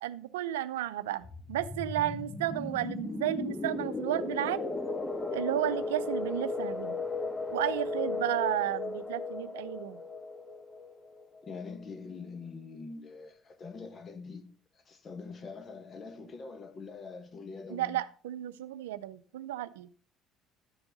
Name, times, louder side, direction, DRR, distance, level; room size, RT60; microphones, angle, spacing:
voice 1, 0.0-4.7 5.3-7.0 7.5-10.0 17.7-19.9, right 13 dB, 85° right, 0.5 m, -33 dB
sound 1, 1.2-11.7, left 3 dB, 20° left, 1.5 m, -36 dB
voice 2, 11.4-18.0, left 4 dB, 40° left, 1.6 m, -44 dB
12.5 x 7.0 x 3.9 m
hypercardioid pair, 65°, 0 cm